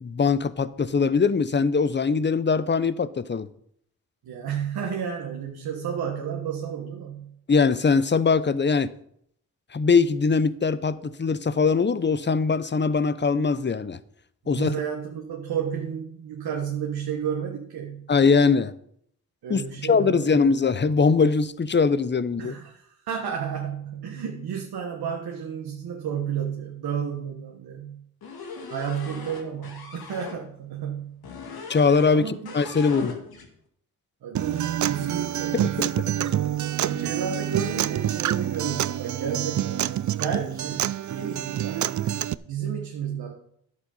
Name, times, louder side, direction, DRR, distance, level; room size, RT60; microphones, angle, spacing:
voice 1, 0.0-3.5 7.5-8.9 9.7-14.0 14.5-14.7 18.1-18.7 19.5-22.5 31.7-33.2 35.5-35.9, left 5 dB, 30° left, 0.8 m, -22 dB
voice 2, 4.2-7.4 14.4-18.1 19.4-20.5 22.4-28.1 28.7-31.2 32.1-33.1 34.2-36.4 36.8-41.9 42.4-43.3, right 7 dB, 80° right, 1.4 m, -32 dB
sound 1, 28.2-30.4 31.2-32.2 32.4-33.5, left 5 dB, 75° left, 1.9 m, -39 dB
Acoustic guitar, 34.3-42.3, right 11 dB, 55° right, 0.5 m, -27 dB
11.0 x 8.2 x 5.4 m
supercardioid pair, 45°, 37 cm